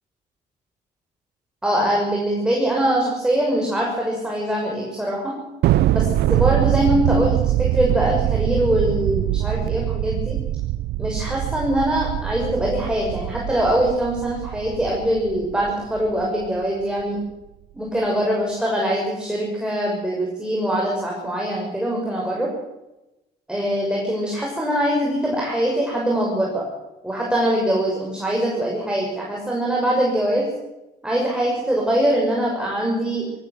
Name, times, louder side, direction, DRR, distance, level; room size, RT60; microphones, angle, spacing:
voice 1, 1.6-5.3 5.9-10.4 11.0-17.2 17.7-22.5 23.5-26.6 27.0-30.5 31.0-33.4, right 1 dB, 5° right, -2 dB, 6.1 m, -23 dB
Thunder, 5.6-16.3, right 14 dB, 75° right, 0.9 m, -23 dB
21.0 x 17.0 x 8.1 m, 0.98 s
cardioid pair, 110°, 17 cm